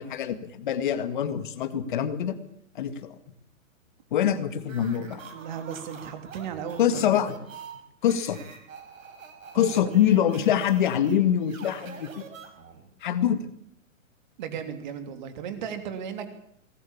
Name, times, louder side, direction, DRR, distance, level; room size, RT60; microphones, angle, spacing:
voice 1, 0.0-2.3 2.8-3.2 4.1-5.2 6.8-7.4 8.0-8.4 9.5-12.2 13.0-13.5, left 9 dB, 35° left, 11 dB, 2.0 m, -24 dB
sound 1, 4.6-12.9, right 6 dB, 70° right, 6.4 m, -46 dB
voice 2, 5.3-7.0 9.5-10.6 14.4-16.3, right 8 dB, 35° right, 7 dB, 3.3 m, -36 dB
22.0 x 19.5 x 8.7 m, 0.69 s
hypercardioid pair, 175°, 41 cm